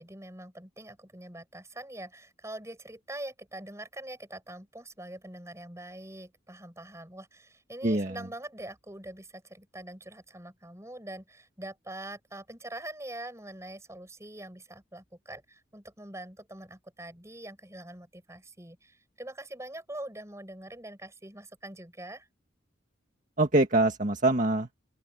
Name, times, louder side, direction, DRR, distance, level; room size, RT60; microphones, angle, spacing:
voice 1, 0.0-22.3, right 1 dB, 15° right, 6.9 m, -44 dB
voice 2, 7.8-8.3 23.4-24.8, right 2 dB, 45° right, 1.8 m, -24 dB
open air
head